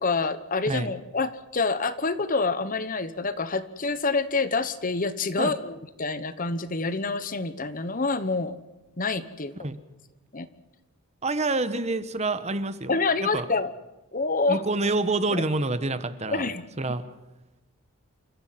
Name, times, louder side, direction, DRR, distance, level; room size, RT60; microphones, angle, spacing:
voice 1, 0.0-8.6 9.0-9.7 10.3-10.5 12.9-13.7 14.1-14.6 15.3-15.5 16.3-16.6, left 3 dB, 40° left, 13 dB, 1.1 m, -27 dB
voice 2, 11.2-12.9 13.2-13.4 14.5-16.5 16.8-17.0, right 2 dB, 30° right, 12 dB, 1.2 m, -27 dB
28.5 x 14.5 x 7.6 m, 1.0 s
head